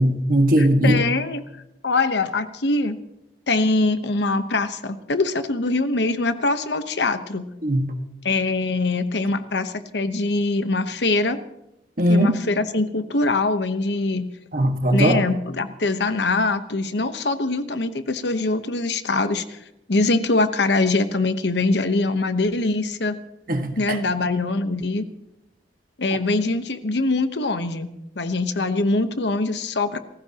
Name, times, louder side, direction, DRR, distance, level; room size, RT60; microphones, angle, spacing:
voice 1, 0.0-1.0 7.6-7.9 12.0-12.4 14.5-15.2 23.5-24.0, right 1 dB, 50° right, 5 dB, 1.7 m, -19 dB
voice 2, 0.6-1.4 1.8-3.0 3.5-7.5 8.2-11.4 12.1-14.3 14.9-19.6 19.9-23.2 23.8-25.0 26.0-30.0, left 2 dB, 75° left, 10 dB, 1.1 m, -23 dB
28.0 x 15.0 x 3.0 m, 0.88 s
head